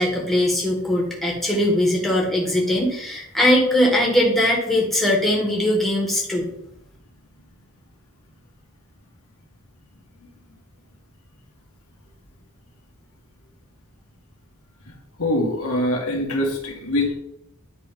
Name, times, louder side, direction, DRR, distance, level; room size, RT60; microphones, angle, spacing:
voice 1, 0.0-6.5, left 1 dB, ahead, -3 dB, 2.1 m, -20 dB
voice 2, 15.2-17.1, left 1 dB, 80° left, -1 dB, 2.1 m, -23 dB
10.5 x 3.5 x 5.3 m, 0.79 s
head